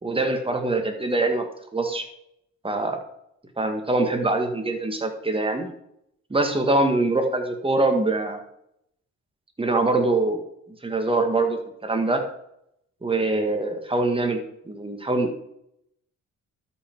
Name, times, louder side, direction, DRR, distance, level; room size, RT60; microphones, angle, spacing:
voice 1, 0.0-1.5 1.7-2.0 2.6-3.0 3.6-5.7 6.3-8.4 9.6-10.4 10.8-12.2 13.0-15.3, right 2 dB, 20° right, 5 dB, 1.8 m, -23 dB
12.5 x 5.7 x 4.6 m, 0.76 s
cardioid pair, 90°, 30 cm